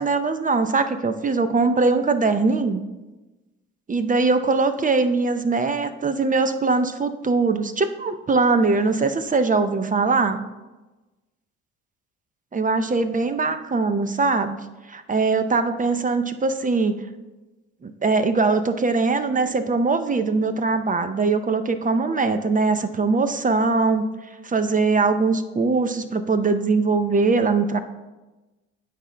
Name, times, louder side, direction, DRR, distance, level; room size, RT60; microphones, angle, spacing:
voice 1, 0.0-2.8 3.9-10.4 12.5-14.6 14.9-16.9 17.8-24.1 24.4-27.8, right 3 dB, 20° right, 10 dB, 0.6 m, -21 dB
13.0 x 5.1 x 2.2 m, 1.1 s
hypercardioid pair, 50°, 40 cm